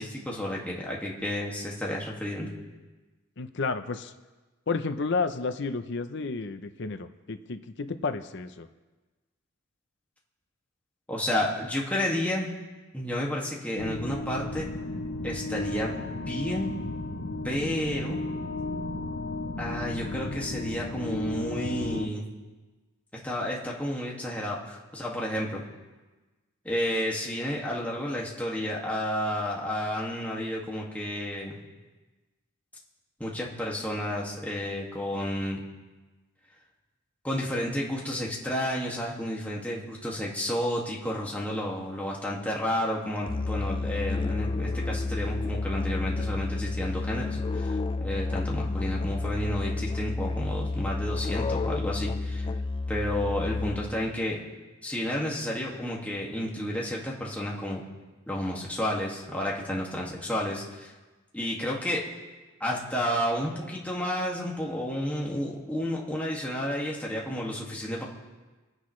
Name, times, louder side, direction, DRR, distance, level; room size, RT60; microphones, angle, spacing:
voice 1, 0.0-2.5 11.1-12.5 12.9-14.7 15.2-15.9 16.3-16.7 17.4-18.2 19.6-22.3 23.2-25.6 26.6-31.6 33.2-35.6 37.2-52.5 52.9-54.4 54.8-57.8 58.3-60.9 61.3-62.0 62.6-68.0, left 1 dB, 10° left, -3 dB, 2.0 m, -31 dB
voice 2, 3.4-4.1 4.7-8.7, left 4 dB, 60° left, 10 dB, 0.7 m, -31 dB
sound 1, 13.8-22.1, left 2 dB, 85° left, 1.0 m, -34 dB
Musical instrument, 43.3-54.1, left 3 dB, 25° left, 0.3 m, -30 dB
28.0 x 10.0 x 3.2 m, 1.2 s
head